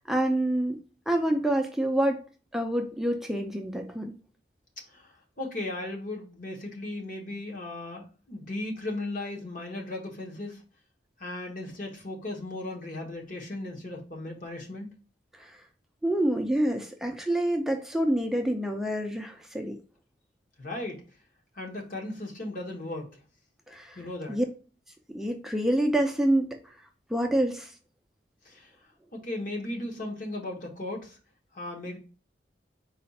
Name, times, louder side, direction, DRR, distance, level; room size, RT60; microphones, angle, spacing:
voice 1, 0.1-0.8 1.1-2.2 2.5-4.1 15.3-15.5 16.0-19.8 23.7-24.0 24.3-24.4 25.1-26.5 27.1-27.7, right 1 dB, ahead, 3 dB, 0.4 m, -27 dB
voice 2, 4.9-10.6 11.2-14.9 20.6-21.0 21.5-23.2 24.0-24.4 28.4-28.7 29.1-31.2 31.5-32.0, left 2 dB, 45° left, 0 dB, 1.0 m, -36 dB
4.2 x 2.3 x 4.1 m, 0.36 s
head